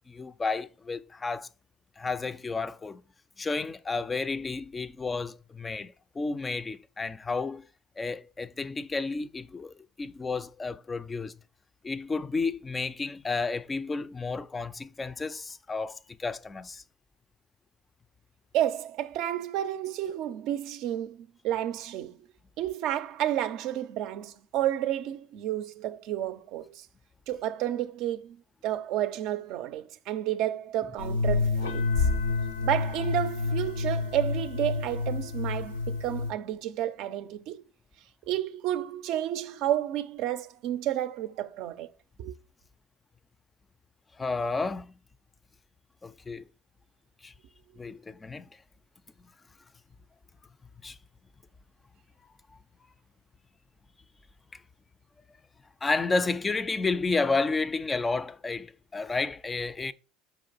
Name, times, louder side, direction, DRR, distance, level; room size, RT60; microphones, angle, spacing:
voice 1, 0.1-1.5 2.0-3.0 3.4-7.6 8.0-11.3 11.8-16.8 44.2-45.0 46.0-46.4 47.2-47.3 47.8-48.5 50.8-51.0 54.5-54.6 55.8-59.9, left 3 dB, 25° left, 0.3 m, -31 dB
voice 2, 18.5-22.2 22.6-26.9 27.3-32.1 32.6-37.6 38.3-41.9 42.2-42.4, right 12 dB, 65° right, 0.4 m, -31 dB
sound 1, 31.0-36.3, left 3 dB, 85° left, 0.5 m, -28 dB
4.4 x 2.9 x 3.9 m
hypercardioid pair, 80°, 0 cm